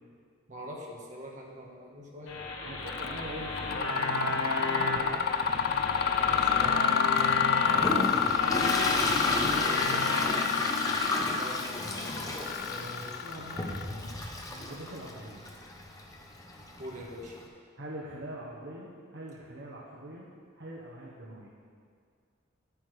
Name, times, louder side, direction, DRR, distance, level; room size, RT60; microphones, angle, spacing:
voice 1, 0.5-2.4 6.2-6.8 11.4-11.6 16.8-17.4, equal, 40° right, -2 dB, 1.7 m, -43 dB
sound 1, 2.3-10.2, left 2 dB, 85° left, 1.5 m, -33 dB
voice 2, 2.6-5.3 5.6-6.5 6.7-7.0 8.1-9.0 9.3-10.4 12.7-13.8 14.5-15.4 17.8-20.3 20.6-21.5, right 1 dB, 65° right, -4 dB, 1.4 m, -43 dB
Mechanisms, 2.9-3.2 3.6-14.1, left 7 dB, 50° left, 0.4 m, -29 dB
Toilet flush, 7.2-17.4, left 1 dB, 20° left, 1.0 m, -34 dB
10.5 x 8.6 x 5.0 m, 2.1 s
head